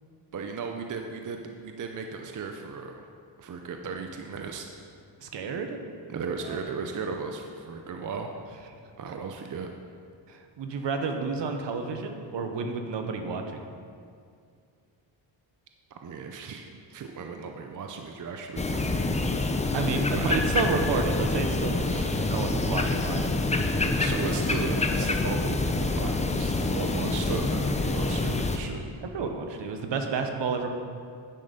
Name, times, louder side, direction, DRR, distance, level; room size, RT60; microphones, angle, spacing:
voice 1, 0.3-3.1 3.4-4.7 6.1-8.3 9.0-9.7 15.9-18.9 19.9-20.4 21.8-22.4 24.0-28.8, right 5 dB, 40° right, 4 dB, 0.6 m, -36 dB
voice 2, 5.2-5.8 6.5-6.6 10.3-13.6 19.7-23.3 29.1-30.7, right 4 dB, 65° right, 5 dB, 1.1 m, -30 dB
sound 1, 18.6-28.6, left 2 dB, 15° left, 0.6 m, -26 dB
10.0 x 6.5 x 5.2 m, 2.3 s
cardioid pair, 115°, 48 cm